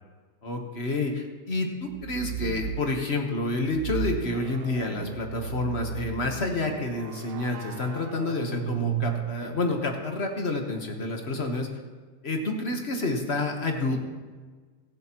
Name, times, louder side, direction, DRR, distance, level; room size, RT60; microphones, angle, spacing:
voice 1, 0.4-11.7 12.2-14.0, left 2 dB, 45° left, 3 dB, 1.4 m, -29 dB
sound 1, 1.9-2.8 3.7-9.7, right 11 dB, 90° right, 0.5 m, -35 dB
23.0 x 7.8 x 3.0 m, 1.5 s
omnidirectional pair, 1.7 m